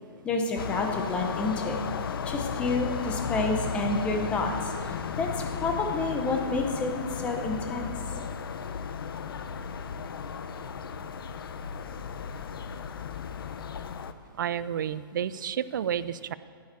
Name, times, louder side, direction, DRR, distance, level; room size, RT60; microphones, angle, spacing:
voice 1, 0.2-1.8 2.2-5.3 5.6-7.9, left 3 dB, 10° left, 3 dB, 0.9 m, -29 dB
sound 1, 0.6-14.1, left 7 dB, 65° left, 0.7 m, -35 dB
voice 2, 14.4-16.3, right 9 dB, 55° right, 15 dB, 0.5 m, -30 dB
10.5 x 9.5 x 8.3 m, 2.2 s
hypercardioid pair, 175°, 13 cm